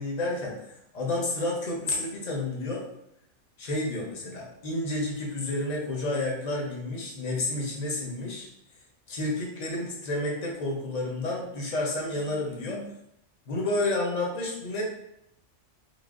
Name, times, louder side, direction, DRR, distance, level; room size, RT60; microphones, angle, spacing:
voice 1, 0.0-2.9 3.6-8.5 9.1-13.0 13.5-14.8, left 2 dB, 45° left, -2 dB, 0.6 m, -30 dB
3.3 x 2.5 x 2.4 m, 0.78 s
omnidirectional pair, 1.4 m